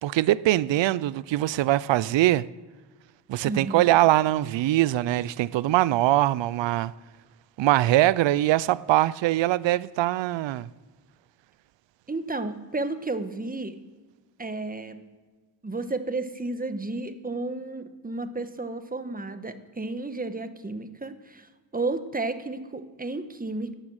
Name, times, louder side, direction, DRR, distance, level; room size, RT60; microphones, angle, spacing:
voice 1, 0.0-2.5 3.3-6.9 7.6-10.7, right 15 dB, 65° right, 0.6 m, -22 dB
voice 2, 3.4-4.0 12.1-13.7 14.4-15.0 15.6-23.7, right 2 dB, 20° right, 1.4 m, -32 dB
14.5 x 9.6 x 6.5 m
supercardioid pair, 55°, 47 cm